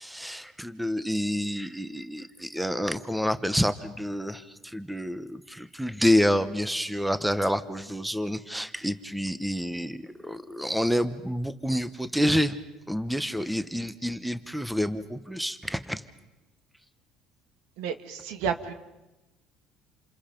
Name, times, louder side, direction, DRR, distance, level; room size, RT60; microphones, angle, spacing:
voice 1, 0.0-12.6 12.9-16.0, equal, ahead, 12 dB, 0.8 m, -28 dB
voice 2, 17.8-18.7, right 7 dB, 85° right, 8 dB, 1.9 m, -31 dB
28.5 x 27.5 x 5.2 m, 1.0 s
cardioid pair, 150°, 0 cm